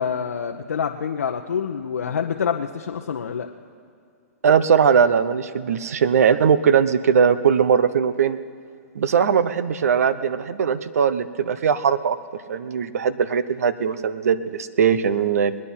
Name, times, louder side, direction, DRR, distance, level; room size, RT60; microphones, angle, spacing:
voice 1, 0.0-3.5, left 7 dB, 85° left, 2 dB, 0.8 m, -26 dB
voice 2, 4.4-8.4 8.9-12.2 12.5-15.5, right 7 dB, 75° right, 14 dB, 0.8 m, -20 dB
21.5 x 9.8 x 5.8 m, 2.3 s
hypercardioid pair, 130°, 8 cm